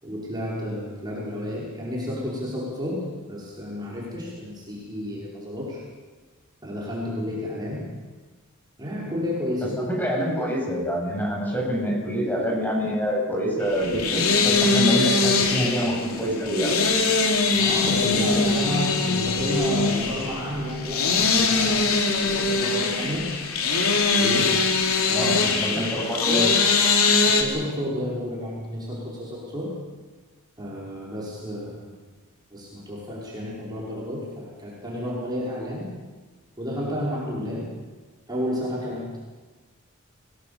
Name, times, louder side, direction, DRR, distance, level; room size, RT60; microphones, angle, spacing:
voice 1, 0.0-5.8 6.6-7.9 8.8-9.8 17.5-23.3 24.2-24.7 25.1-25.8 27.2-29.8 30.6-31.9 32.5-35.9 36.6-37.7 38.3-39.2, equal, 20° right, -6 dB, 5.5 m, -31 dB
voice 2, 9.8-16.7 25.1-26.5, equal, 10° left, -2 dB, 7.7 m, -26 dB
sound 1, 13.7-27.4, left 4 dB, 80° left, 3.3 m, -22 dB
28.5 x 18.5 x 7.0 m, 1.3 s
head